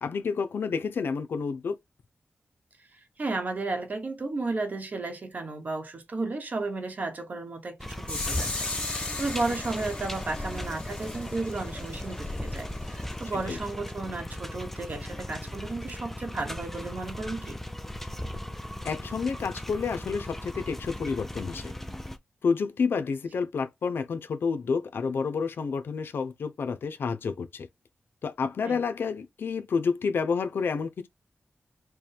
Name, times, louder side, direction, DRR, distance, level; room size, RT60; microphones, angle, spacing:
voice 1, 0.0-1.8 13.5-13.6 18.8-21.7 22.4-27.7 28.2-31.1, left 5 dB, 80° left, 0.6 m, -29 dB
voice 2, 3.2-17.6 28.6-28.8, right 3 dB, 45° right, 1.0 m, -33 dB
sound 1, 7.8-22.2, left 1 dB, 5° left, 0.4 m, -37 dB
sound 2, 8.1-13.7, left 2 dB, 30° left, 1.4 m, -37 dB
4.5 x 2.2 x 3.3 m
wide cardioid pair, 140°, 4 cm